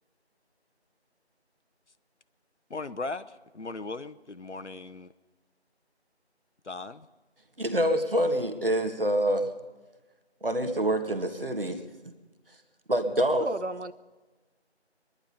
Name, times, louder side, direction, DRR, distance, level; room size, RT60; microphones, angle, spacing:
voice 1, 2.7-5.1 6.6-7.1, left 3 dB, 85° left, 11 dB, 0.9 m, -38 dB
voice 2, 7.6-9.5 10.4-11.8 12.9-13.5, right 1 dB, 55° right, 7 dB, 1.7 m, -26 dB
voice 3, 13.4-13.9, right 3 dB, 85° right, 13 dB, 0.9 m, -33 dB
22.5 x 10.5 x 5.5 m, 1.2 s
figure-of-eight pair, 175°, 34 cm